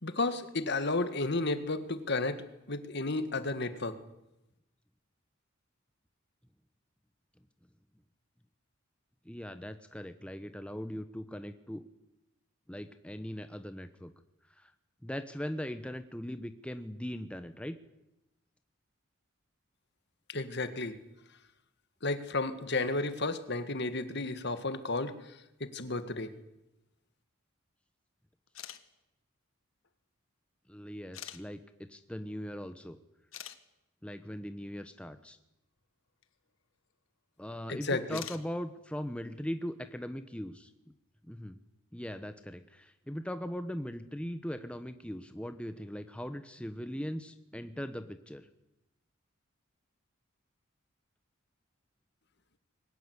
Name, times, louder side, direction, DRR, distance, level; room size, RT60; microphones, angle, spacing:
voice 1, 0.0-2.4 2.7-4.0 20.3-20.9 22.0-25.2 25.6-26.3 37.7-38.2, left 2 dB, 55° left, 11 dB, 1.9 m, -32 dB
voice 2, 9.2-11.8 12.7-14.1 14.6-14.7 15.0-17.8 30.7-33.0 34.0-35.4 37.4-40.7 41.3-41.6 41.9-48.5, equal, 5° left, 9 dB, 1.0 m, -40 dB
sound 1, 28.5-28.8 29.8-29.9 31.1-31.4 32.8-32.9 33.3-33.6 36.2-36.3 38.0-38.4, left 11 dB, 80° left, 1.7 m, -43 dB
22.5 x 19.0 x 9.8 m, 0.91 s
head